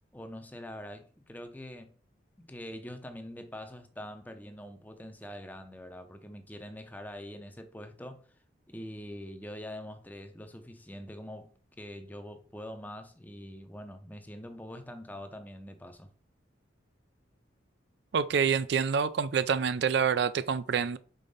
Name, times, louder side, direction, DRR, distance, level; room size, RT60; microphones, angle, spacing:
voice 1, 0.1-1.9 2.4-8.3 8.7-16.1, left 1 dB, 10° left, 0.6 m, -44 dB
voice 2, 18.1-21.0, right 6 dB, 60° right, 0.4 m, -27 dB
5.3 x 3.8 x 5.4 m
head